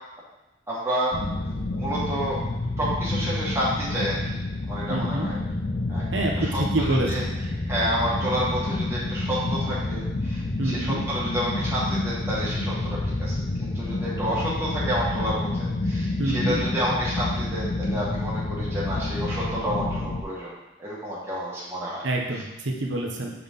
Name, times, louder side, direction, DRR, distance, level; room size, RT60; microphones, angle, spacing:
voice 1, 0.7-1.1 1.7-2.4 2.8-4.2 4.7-5.4 5.9-6.1 6.4-7.2 7.7-15.5 15.8-20.5 20.8-22.0, equal, 15° right, -8 dB, 1.5 m, -29 dB
sound 1, 1.1-20.2, left 2 dB, 35° left, 0.5 m, -29 dB
voice 2, 4.9-5.3 6.1-7.3 10.6-11.0 16.2-16.6 22.0-23.3, right 2 dB, 75° right, 0 dB, 1.0 m, -27 dB
7.2 x 3.9 x 3.6 m, 0.97 s
head